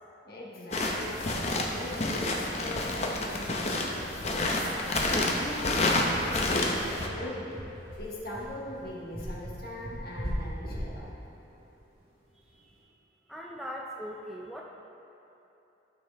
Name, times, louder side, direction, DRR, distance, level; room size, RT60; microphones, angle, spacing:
voice 1, 0.2-1.3 1.7-5.0 5.3-7.6 8.0-11.1, left 1 dB, 55° left, -4 dB, 1.3 m, -41 dB
sound 1, 0.7-7.1, left 2 dB, 35° left, 0.7 m, -29 dB
sound 2, 5.2-12.7, equal, 55° right, 1.9 m, -39 dB
voice 2, 12.3-12.9 13.3-14.6, equal, ahead, -3 dB, 0.4 m, -41 dB
12.0 x 5.4 x 3.4 m, 2.9 s
head